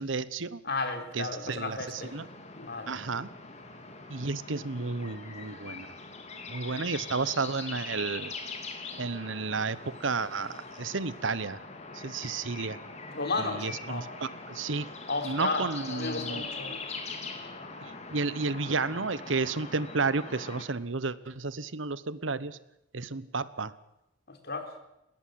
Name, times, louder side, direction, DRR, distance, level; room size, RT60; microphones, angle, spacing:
voice 1, 0.0-0.6 1.1-2.3 2.9-3.3 4.1-5.9 6.5-8.3 9.0-11.6 11.9-12.8 13.4-14.9 15.2-16.5 17.8-22.6 22.9-23.7, right 4 dB, 80° right, 17 dB, 1.1 m, -32 dB
voice 2, 0.7-2.1 2.6-2.9 13.1-14.1 15.1-15.6 15.9-16.8 24.3-24.7, left 3 dB, 60° left, 7 dB, 3.8 m, -33 dB
sound 1, 1.9-20.6, left 4 dB, 35° left, 3.3 m, -42 dB
21.5 x 18.0 x 7.7 m, 0.86 s
head